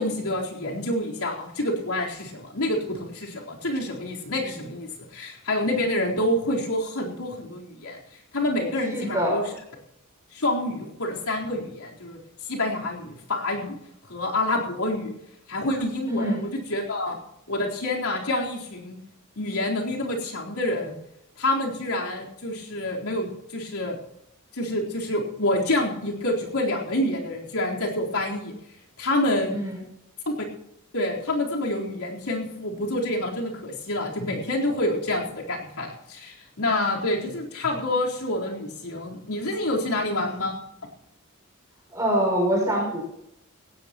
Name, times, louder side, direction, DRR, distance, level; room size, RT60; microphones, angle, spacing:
voice 1, 0.0-8.0 8.3-9.5 10.3-13.8 14.1-15.1 15.5-17.2 17.5-19.0 19.4-20.9 21.4-24.0 24.5-28.5 29.0-29.6 30.9-40.6, left 1 dB, 85° left, -2 dB, 4.0 m, -27 dB
voice 2, 8.9-9.4 16.1-16.4 29.5-29.8 41.9-43.0, right 1 dB, 15° right, -2 dB, 5.9 m, -24 dB
18.0 x 17.0 x 3.0 m, 0.81 s
head